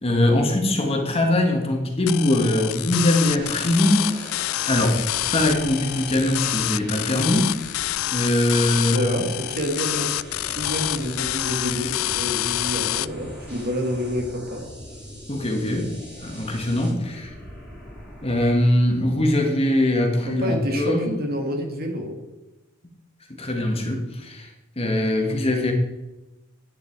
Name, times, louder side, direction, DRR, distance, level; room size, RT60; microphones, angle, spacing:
voice 1, 0.0-4.4 4.7-5.0 5.3-7.6 8.1-9.1 15.3-15.9 16.2-17.3 18.2-21.1 23.3-25.7, left 1 dB, 30° left, 2 dB, 1.7 m, -22 dB
sound 1, 2.1-13.1, left 16 dB, 85° left, 0.3 m, -27 dB
sound 2, 3.2-18.5, equal, 5° right, 3.4 m, -41 dB
voice 2, 8.9-10.2 10.5-14.6 20.3-22.2, equal, 50° right, 3 dB, 2.3 m, -28 dB
12.0 x 9.6 x 4.7 m, 1.0 s
head